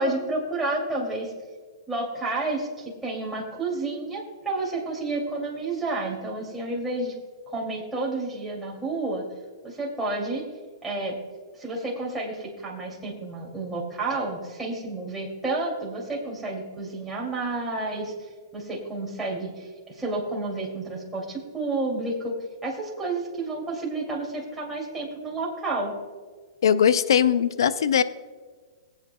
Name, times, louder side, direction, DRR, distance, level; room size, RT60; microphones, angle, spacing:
voice 1, 0.0-1.3 1.9-7.2 7.5-9.2 9.6-10.5 10.8-11.2 11.5-22.3 22.6-26.0, right 2 dB, 5° right, -3 dB, 2.4 m, -30 dB
voice 2, 26.6-28.0, left 8 dB, 75° left, 14 dB, 0.5 m, -20 dB
20.5 x 8.2 x 2.2 m, 1.5 s
hypercardioid pair, 135°, 2 cm